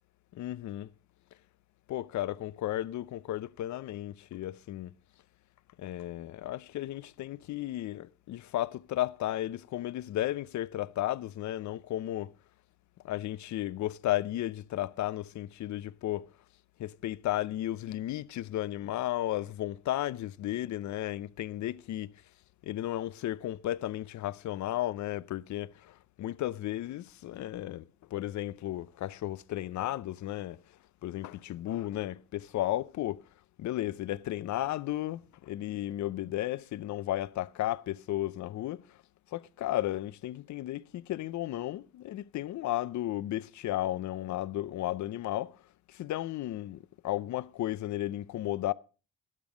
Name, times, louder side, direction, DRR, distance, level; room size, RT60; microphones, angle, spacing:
voice 1, 0.3-0.9 1.9-4.9 5.8-12.3 13.0-16.3 16.8-22.1 22.6-30.6 31.0-33.2 33.6-39.0 39.3-45.6 45.9-48.7, left 14 dB, 70° left, 0.6 m, -34 dB
12.5 x 11.0 x 5.0 m
cardioid pair, 90°, 30 cm